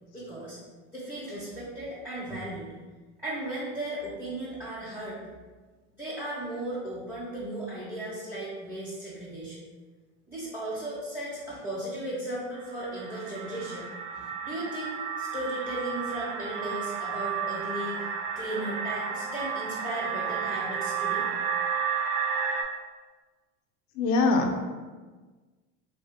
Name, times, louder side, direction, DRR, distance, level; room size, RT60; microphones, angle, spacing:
voice 1, 0.1-0.6 0.9-2.7 3.2-5.2 5.9-9.6 10.3-13.9 14.1-21.3, right 1 dB, 5° right, -9 dB, 0.9 m, -36 dB
sound 1, 12.6-22.6, right 7 dB, 80° right, 0.7 m, -32 dB
voice 2, 24.0-24.7, left 3 dB, 50° left, 2 dB, 0.5 m, -24 dB
3.0 x 2.7 x 3.4 m, 1.3 s
supercardioid pair, 100°, 35 cm